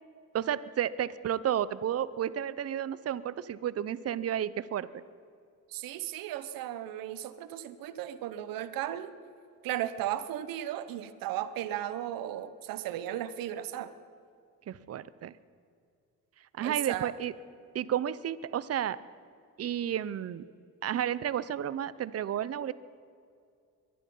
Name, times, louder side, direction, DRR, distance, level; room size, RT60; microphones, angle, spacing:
voice 1, 0.3-5.0 14.7-15.3 16.4-17.3 17.7-19.0 19.6-20.5 20.8-22.7, right 10 dB, 45° right, 17 dB, 0.7 m, -32 dB
voice 2, 5.7-9.1 9.6-13.9 16.6-17.1, right 12 dB, 85° right, 12 dB, 0.9 m, -35 dB
22.5 x 11.0 x 5.5 m, 2.4 s
cardioid pair, 90°, 33 cm